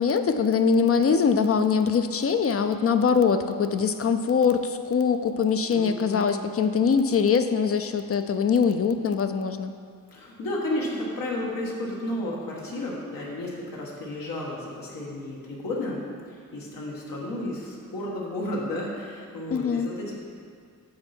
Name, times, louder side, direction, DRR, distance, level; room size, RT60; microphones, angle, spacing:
voice 1, 0.0-9.7 19.5-19.9, left 6 dB, 45° left, 8 dB, 0.4 m, -23 dB
voice 2, 5.7-6.3 10.1-20.2, left 1 dB, 80° left, -4 dB, 1.6 m, -32 dB
8.6 x 6.9 x 4.4 m, 2.1 s
wide cardioid pair, 145°, 34 cm